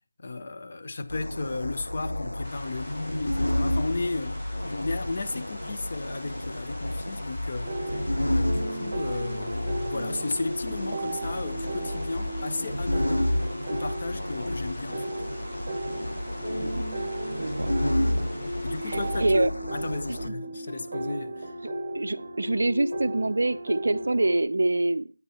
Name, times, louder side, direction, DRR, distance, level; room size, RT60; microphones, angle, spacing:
voice 1, 0.2-8.0 8.3-13.3 13.7-15.2 18.6-21.5, left 3 dB, 35° left, 0.6 m, -34 dB
sound 1, 1.1-20.3, left 1 dB, 80° left, 0.7 m, -31 dB
sound 2, 2.4-19.3, left 1 dB, 15° left, 1.2 m, -48 dB
sound 3, 7.6-24.4, right 1 dB, 30° right, 1.0 m, -35 dB
voice 2, 17.4-17.7 18.8-19.5 20.2-20.4 21.9-25.1, right 2 dB, 55° right, 0.4 m, -25 dB
9.0 x 8.9 x 3.1 m
figure-of-eight pair, 170°, 0 cm